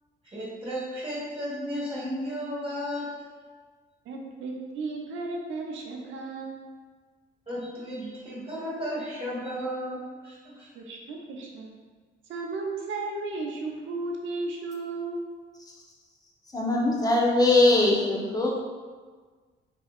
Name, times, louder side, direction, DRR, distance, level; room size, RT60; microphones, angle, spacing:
voice 1, 0.2-3.1 7.5-10.0 10.2-10.7, equal, 30° right, -8 dB, 1.5 m, -34 dB
voice 2, 4.1-6.7 10.7-11.7 12.3-15.2, right 3 dB, 75° right, 0 dB, 0.7 m, -34 dB
voice 3, 16.5-18.5, left 2 dB, 20° left, -2 dB, 0.7 m, -21 dB
4.0 x 2.9 x 2.4 m, 1.5 s
cardioid pair, 90°, 20 cm